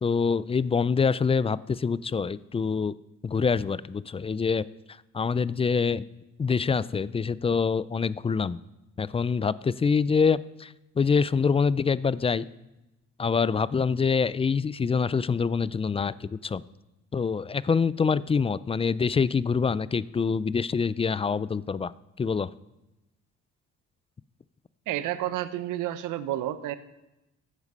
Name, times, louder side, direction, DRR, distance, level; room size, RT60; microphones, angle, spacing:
voice 1, 0.0-2.9 3.2-4.6 5.1-6.0 6.4-8.6 9.0-12.5 13.2-16.6 17.1-21.9 22.2-22.5, left 5 dB, 20° left, 19 dB, 0.3 m, -25 dB
voice 2, 24.9-26.8, right 13 dB, 90° right, 13 dB, 0.8 m, -30 dB
14.0 x 8.2 x 5.4 m, 0.95 s
cardioid pair, 90°, 30 cm